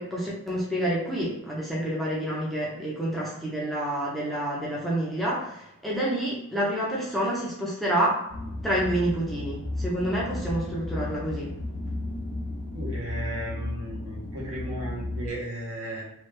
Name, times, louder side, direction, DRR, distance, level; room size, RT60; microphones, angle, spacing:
voice 1, 0.0-8.2 8.6-11.5, right 1 dB, ahead, -6 dB, 0.6 m, -28 dB
sound 1, 8.3-15.3, left 2 dB, 75° left, 0.9 m, -34 dB
voice 2, 12.7-16.0, right 1 dB, 65° right, -5 dB, 1.2 m, -35 dB
3.2 x 2.3 x 3.2 m, 0.80 s
head